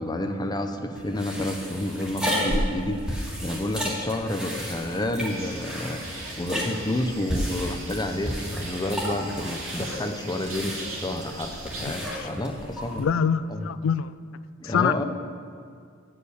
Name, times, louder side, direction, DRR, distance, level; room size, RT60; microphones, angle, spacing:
voice 1, 0.0-13.0 13.5-13.7 14.6-15.0, left 1 dB, 20° left, 6 dB, 0.6 m, -30 dB
sound 1, 0.9-13.0, equal, 5° right, 1.7 m, -32 dB
sound 2, 5.2-11.9, right 3 dB, 75° right, 2.1 m, -40 dB
voice 2, 11.8-12.3 13.0-14.1 14.6-15.0, left 7 dB, 70° left, 15 dB, 0.4 m, -25 dB
8.5 x 5.5 x 7.9 m, 2.3 s
head